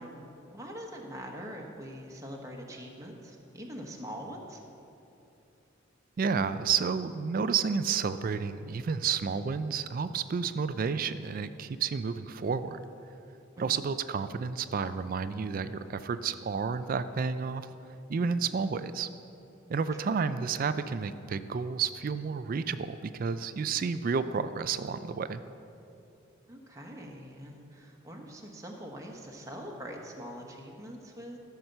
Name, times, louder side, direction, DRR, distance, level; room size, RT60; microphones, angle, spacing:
voice 1, 0.0-4.6 13.6-13.9 20.0-20.2 26.5-31.4, equal, 15° right, 0 dB, 1.1 m, -43 dB
voice 2, 6.2-12.8 13.6-17.7 18.1-19.1 19.7-25.4, right 5 dB, 45° right, 12 dB, 0.3 m, -31 dB
13.5 x 5.8 x 6.6 m, 2.8 s
head